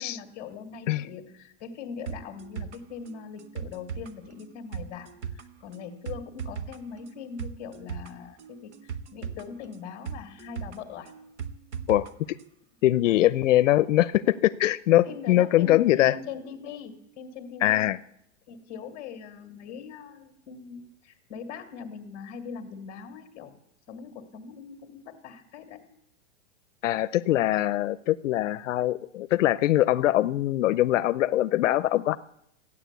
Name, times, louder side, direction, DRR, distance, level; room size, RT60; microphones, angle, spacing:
voice 1, 0.0-11.1 13.0-13.2 15.1-17.9 18.5-23.6 23.9-25.9 27.3-27.5, left 6 dB, 25° left, 7 dB, 1.8 m, -41 dB
sound 1, 2.1-12.1 12.4-12.5, right 7 dB, 65° right, 1.2 m, -39 dB
voice 2, 11.9-12.4 12.8-16.1 17.6-18.0 26.8-32.2, left 14 dB, 80° left, 15 dB, 0.6 m, -22 dB
14.5 x 9.8 x 8.2 m, 0.76 s
supercardioid pair, 175°, 37 cm